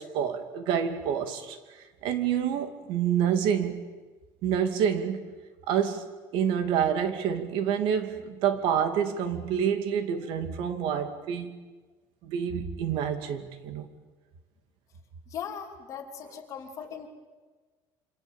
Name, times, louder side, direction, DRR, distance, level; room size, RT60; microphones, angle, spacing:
voice 1, 0.0-1.6 2.0-3.8 4.4-5.3 5.7-6.0 6.3-11.5 12.2-13.9, right 8 dB, 65° right, 8 dB, 2.6 m, -27 dB
voice 2, 15.3-17.1, left 8 dB, 35° left, 3 dB, 3.1 m, -39 dB
28.0 x 26.5 x 7.3 m, 1.3 s
cardioid pair, 175°, 9 cm